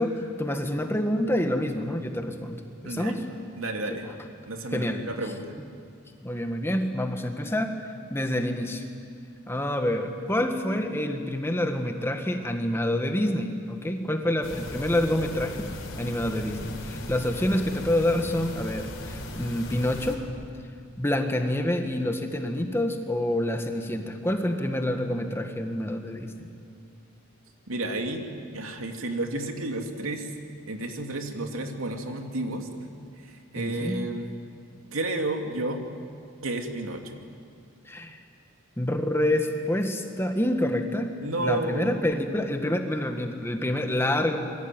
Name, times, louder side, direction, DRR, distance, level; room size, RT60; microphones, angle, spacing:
voice 1, 0.0-3.2 4.7-5.0 6.2-7.7 8.1-8.8 9.5-15.7 16.0-20.2 21.0-26.5 33.6-34.0 37.9-38.2 38.8-41.1 41.4-44.4, left 1 dB, 10° left, 5 dB, 1.8 m, -27 dB
voice 2, 2.8-3.1 3.6-4.1 4.5-5.6 27.7-30.3 30.7-32.9 33.2-34.4 34.9-35.8 36.4-37.2 41.2-42.0, right 2 dB, 90° right, 4 dB, 2.8 m, -31 dB
sound 1, 14.4-20.2, left 1 dB, 65° left, 4.3 m, -38 dB
26.5 x 23.0 x 9.2 m, 2.3 s
head